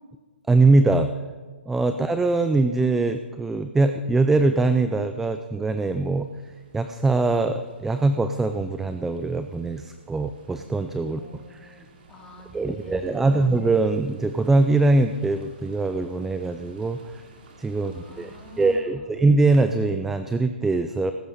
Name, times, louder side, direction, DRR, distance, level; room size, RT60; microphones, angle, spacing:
voice 1, 0.5-1.1 1.7-6.3 6.7-11.2 11.6-11.7 12.5-17.2 17.6-18.3 18.6-21.1, right 3 dB, 5° right, 9 dB, 0.4 m, -22 dB
sound 1, 5.2-18.8, right 3 dB, 50° right, 3.3 m, -53 dB
voice 2, 11.0-13.5 17.7-19.1, left 2 dB, 10° left, -1 dB, 2.9 m, -47 dB
18.5 x 15.0 x 4.1 m, 1.4 s
hypercardioid pair, 155°, 6 cm